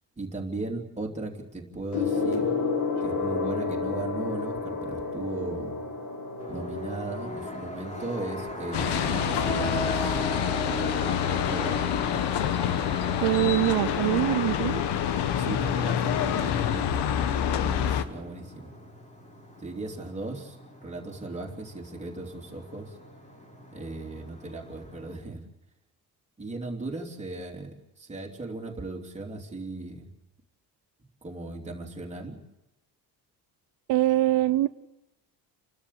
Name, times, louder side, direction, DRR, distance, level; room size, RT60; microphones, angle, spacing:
voice 1, 0.2-2.6 3.0-5.8 6.5-10.2 11.2-11.8 15.3-17.2 17.5-18.7 19.6-20.6 20.8-23.0 23.7-25.4 26.4-30.1 31.2-32.4, right 2 dB, 15° right, 1 dB, 3.1 m, -37 dB
Gong, 1.9-11.7 12.6-12.9, left 4 dB, 60° left, 5.2 m, -32 dB
sound 1, 6.4-25.2, left 1 dB, 20° left, 3.8 m, -38 dB
sound 2, 8.7-18.0, left 10 dB, 90° left, 1.6 m, -27 dB
voice 2, 13.2-14.8 33.9-34.7, right 16 dB, 75° right, 12 dB, 0.7 m, -23 dB
29.5 x 13.0 x 8.4 m, 0.96 s
cardioid pair, 160°, 39 cm